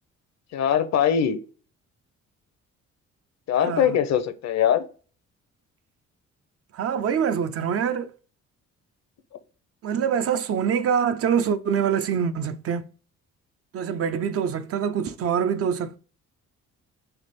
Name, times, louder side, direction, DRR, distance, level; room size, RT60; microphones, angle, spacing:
voice 1, 0.5-1.4 3.5-4.8, left 9 dB, 60° left, 0.6 m, -22 dB
voice 2, 3.6-4.0 6.7-8.1 9.8-12.9 13.7-16.0, right 7 dB, 50° right, 0.4 m, -25 dB
3.4 x 3.1 x 4.1 m
cardioid pair, 90°, 30 cm